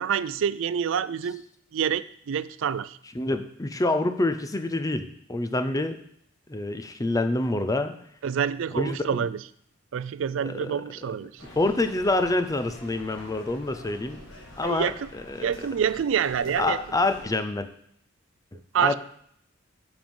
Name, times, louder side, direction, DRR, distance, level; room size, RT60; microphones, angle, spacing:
voice 1, 0.0-1.4 1.7-3.0 8.2-9.4 9.9-11.4 14.6-15.1 15.4-16.8 18.7-19.0, right 8 dB, 70° right, 16 dB, 0.4 m, -27 dB
voice 2, 3.1-6.0 6.5-8.0 8.7-9.2 10.4-10.8 11.6-14.2 14.6-15.7 16.6-17.7 18.8-19.0, left 2 dB, 20° left, 9 dB, 0.5 m, -27 dB
sound 1, 11.4-17.3, left 1 dB, 70° left, 1.5 m, -46 dB
7.8 x 5.2 x 5.4 m, 0.67 s
head